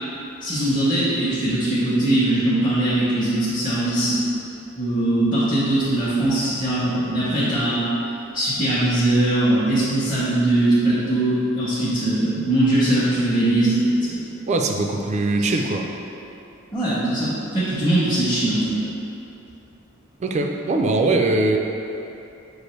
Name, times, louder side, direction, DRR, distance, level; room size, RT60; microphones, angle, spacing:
voice 1, 0.4-4.2 4.8-7.9 8.3-14.2 15.4-15.5 16.7-18.8, right 1 dB, 20° left, -13 dB, 0.8 m, -21 dB
voice 2, 14.5-15.9 20.2-21.6, right 2 dB, 35° right, 3 dB, 0.3 m, -21 dB
6.3 x 2.5 x 3.1 m, 2.8 s
head